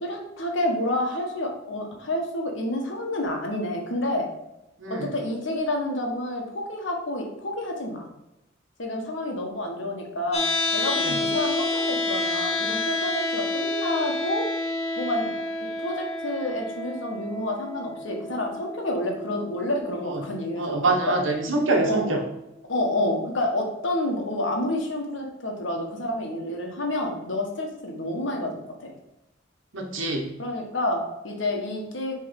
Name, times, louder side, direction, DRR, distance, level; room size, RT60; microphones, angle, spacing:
voice 1, 0.0-4.3 4.9-8.1 8.8-10.5 10.7-14.4 15.0-15.3 15.8-21.2 21.8-22.1 22.7-28.9 30.4-32.1, left 1 dB, 65° left, 1 dB, 1.5 m, -29 dB
voice 2, 4.8-5.1 11.1-11.2 20.1-20.2 20.6-22.2 29.7-30.3, right 2 dB, 75° right, 2 dB, 1.3 m, -25 dB
sound 1, 10.3-22.3, left 2 dB, 30° left, 0.9 m, -30 dB
6.5 x 3.5 x 5.3 m, 0.90 s
head